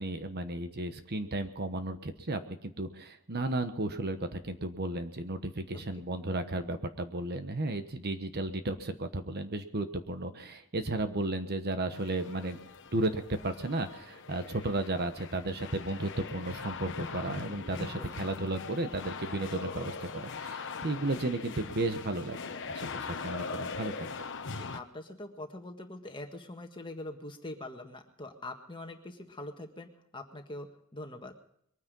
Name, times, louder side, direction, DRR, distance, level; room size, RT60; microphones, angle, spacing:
voice 1, 0.0-12.6 12.9-24.1, right 2 dB, 45° right, 8 dB, 1.1 m, -34 dB
sound 1, 11.9-24.8, left 4 dB, 55° left, 1.1 m, -41 dB
voice 2, 17.8-18.1 24.6-31.3, left 1 dB, 20° left, 4 dB, 1.7 m, -44 dB
22.5 x 9.7 x 5.4 m, 0.69 s
head